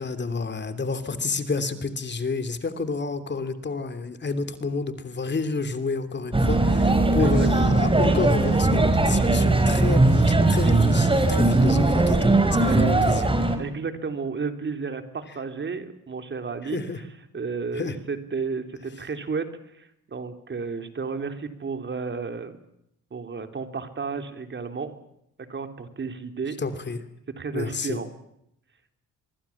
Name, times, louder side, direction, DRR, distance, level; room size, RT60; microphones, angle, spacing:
voice 1, 0.0-13.3 16.6-17.0 17.7-18.0 26.6-27.0 27.5-28.0, left 4 dB, 35° left, 10 dB, 3.0 m, -30 dB
sound 1, 6.3-13.6, right 2 dB, 15° right, 5.0 m, -19 dB
voice 2, 7.2-7.7 12.7-12.8 13.3-16.8 17.3-19.5 19.7-22.5 23.1-24.9 25.5-26.6 27.4-28.1, right 5 dB, 40° right, 8 dB, 3.4 m, -32 dB
25.5 x 23.0 x 7.3 m, 0.77 s
cardioid pair, 90°, 30 cm